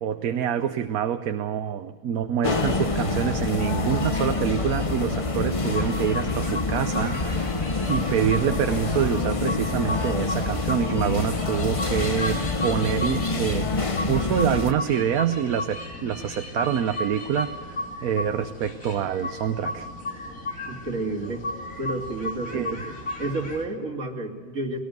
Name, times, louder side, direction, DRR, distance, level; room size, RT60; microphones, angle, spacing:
voice 1, 0.0-7.5 7.9-19.9 22.5-22.8, right 9 dB, 80° right, 9 dB, 1.3 m, -26 dB
sound 1, 2.4-14.7, left 3 dB, 25° left, 1.0 m, -26 dB
sound 2, 5.7-23.6, left 1 dB, 65° left, 3.5 m, -35 dB
voice 2, 20.7-21.4 21.8-22.9 23.2-24.8, right 2 dB, 60° right, 1 dB, 3.0 m, -30 dB
20.5 x 18.5 x 9.4 m, 1.4 s
omnidirectional pair, 1.5 m